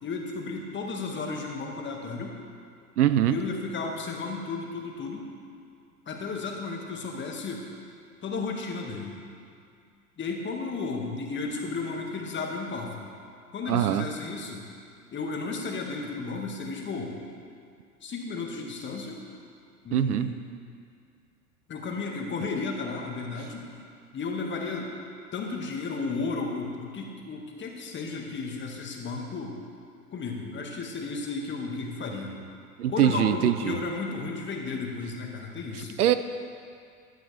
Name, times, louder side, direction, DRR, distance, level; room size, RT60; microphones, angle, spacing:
voice 1, 0.0-2.4 3.3-5.2 6.1-7.6 8.2-9.2 10.2-13.1 13.5-14.7 15.1-17.1 18.0-19.2 19.8-20.4 21.7-23.6 24.1-24.9 25.3-29.6 30.1-32.4 32.9-36.0, left 4 dB, 25° left, 1 dB, 2.0 m, -33 dB
voice 2, 3.0-3.4 13.7-14.0 19.9-20.3 32.8-33.8 36.0-36.1, right 11 dB, 75° right, 11 dB, 0.7 m, -23 dB
16.5 x 11.5 x 3.5 m, 2.3 s
figure-of-eight pair, 90°, 46 cm